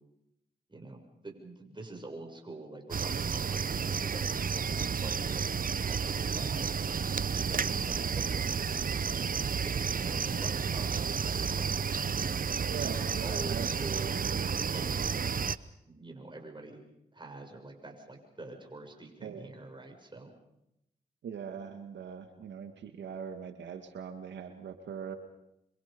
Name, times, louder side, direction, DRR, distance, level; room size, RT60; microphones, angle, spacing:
voice 1, 0.7-5.4 5.7-7.0 7.3-8.6 8.9-9.0 9.6-14.2 14.7-15.2 15.9-16.8 17.1-20.3, right 2 dB, 25° right, 2 dB, 6.8 m, -46 dB
sound 1, 2.9-15.6, right 6 dB, 50° right, 0.9 m, -31 dB
voice 2, 12.7-14.5 19.2-19.5 21.2-25.2, right 7 dB, 85° right, 7 dB, 1.9 m, -41 dB
26.0 x 25.5 x 5.3 m, 0.84 s
cardioid pair, 50°, 18 cm